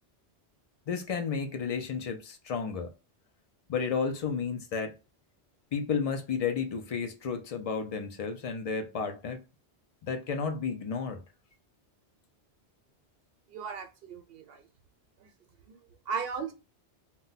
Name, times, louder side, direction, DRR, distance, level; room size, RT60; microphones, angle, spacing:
voice 1, 0.9-2.9 3.7-4.9 5.7-9.4 10.0-11.2, left 5 dB, 65° left, 0.3 m, -32 dB
voice 2, 13.5-14.6 16.1-16.5, right 5 dB, 65° right, 0.8 m, -36 dB
2.2 x 2.1 x 3.8 m
omnidirectional pair, 1.1 m